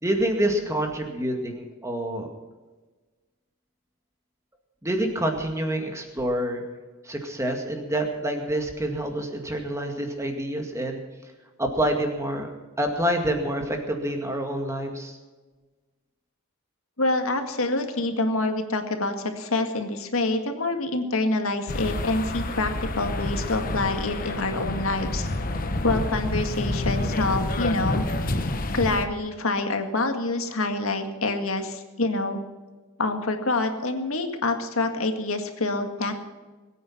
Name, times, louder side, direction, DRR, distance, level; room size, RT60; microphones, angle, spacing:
voice 1, 0.0-2.3 4.8-6.6 7.0-11.0 11.6-12.5 12.8-15.2, right 1 dB, 15° right, 3 dB, 2.1 m, -27 dB
voice 2, 17.0-25.3 25.8-28.1 28.7-32.4 33.0-36.1, left 2 dB, 80° left, 6 dB, 1.9 m, -26 dB
sound 1, 21.7-29.0, left 2 dB, 40° left, 1.1 m, -28 dB
21.5 x 9.2 x 5.9 m, 1.3 s
head